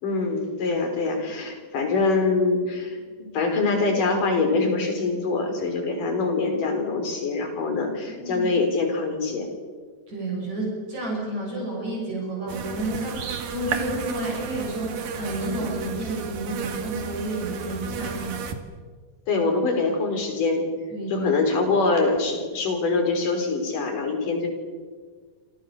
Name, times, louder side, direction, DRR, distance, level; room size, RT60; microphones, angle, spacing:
voice 1, 0.0-9.5 19.3-20.7 21.1-24.5, left 3 dB, 70° left, 5 dB, 5.8 m, -24 dB
voice 2, 10.1-18.4 20.9-21.3, right 1 dB, 55° right, -2 dB, 8.0 m, -31 dB
sound 1, 12.5-18.5, right 6 dB, 75° right, 3.7 m, -32 dB
28.0 x 27.5 x 6.8 m, 1.5 s
omnidirectional pair, 3.9 m